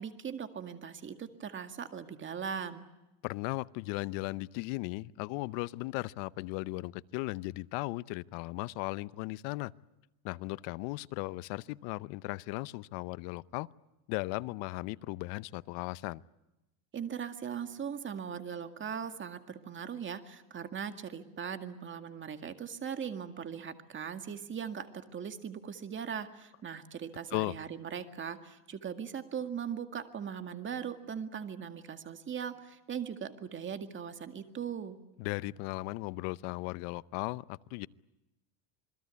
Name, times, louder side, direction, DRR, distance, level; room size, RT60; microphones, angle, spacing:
voice 1, 0.0-2.8 16.9-35.0, right 7 dB, 25° right, 8 dB, 2.0 m, -39 dB
voice 2, 3.2-9.7 10.2-13.7 14.1-16.2 27.3-27.5 35.2-37.9, left 21 dB, 70° left, 18 dB, 0.8 m, -37 dB
27.5 x 21.5 x 8.3 m, 0.98 s
supercardioid pair, 135°, 45 cm